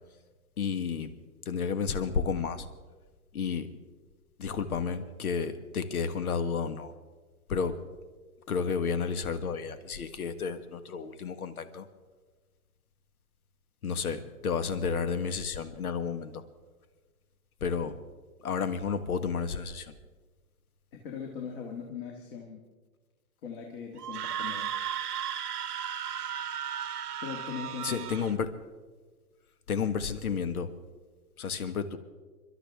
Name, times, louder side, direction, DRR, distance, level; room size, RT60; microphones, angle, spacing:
voice 1, 0.6-1.1 1.4-2.7 3.3-3.7 4.4-6.9 7.5-7.8 8.5-11.8 13.8-16.4 17.6-18.0 18.4-19.9 27.8-28.5 29.7-30.7 31.4-32.0, left 6 dB, 75° left, 11 dB, 1.6 m, -31 dB
voice 2, 20.9-22.6 23.4-24.7 27.2-28.3, left 6 dB, 40° left, 1 dB, 1.9 m, -40 dB
Screaming, 24.0-28.3, right 9 dB, 90° right, 1.1 m, -35 dB
29.5 x 12.5 x 3.6 m, 1.4 s
hypercardioid pair, 160°, 45 cm